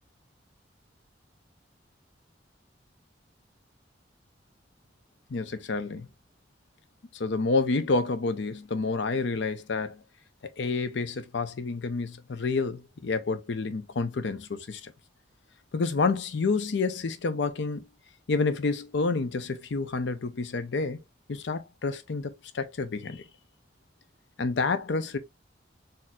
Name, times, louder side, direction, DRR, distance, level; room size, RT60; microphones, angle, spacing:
voice 1, 5.3-6.1 7.1-10.0 10.6-14.9 15.7-17.8 18.3-21.0 21.3-23.2 24.4-25.2, left 4 dB, 75° left, 0.6 m, -29 dB
4.1 x 2.6 x 2.3 m
head